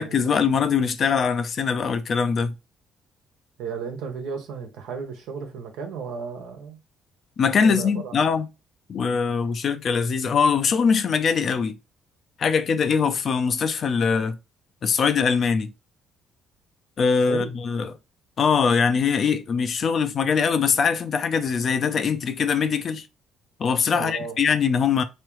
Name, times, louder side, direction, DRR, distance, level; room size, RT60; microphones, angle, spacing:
voice 1, 0.0-2.5 7.4-8.5 8.9-11.7 12.4-14.4 14.8-15.7 17.0-17.9 18.4-23.1 23.6-25.0, left 6 dB, 50° left, 0.6 m, -22 dB
voice 2, 3.6-6.8 7.6-8.1 17.3-17.5 23.9-24.4, right 5 dB, 85° right, 1.2 m, -34 dB
3.6 x 3.2 x 3.1 m
cardioid pair, 100°, 0 cm